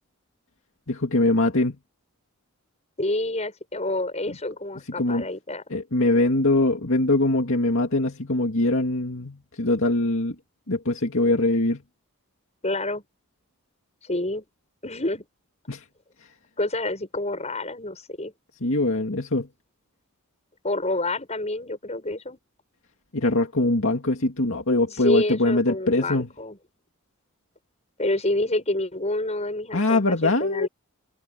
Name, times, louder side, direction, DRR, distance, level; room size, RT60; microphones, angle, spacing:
voice 1, 0.9-1.8 5.0-5.2 5.7-10.3 10.7-11.8 15.7-15.8 18.6-19.5 23.1-26.3 29.7-30.7, left 2 dB, 60° left, 2.4 m, -22 dB
voice 2, 3.0-5.6 12.6-13.0 14.0-14.4 14.8-15.3 16.6-18.3 20.6-22.4 24.9-26.6 28.0-30.7, left 2 dB, 30° left, 7.3 m, -28 dB
head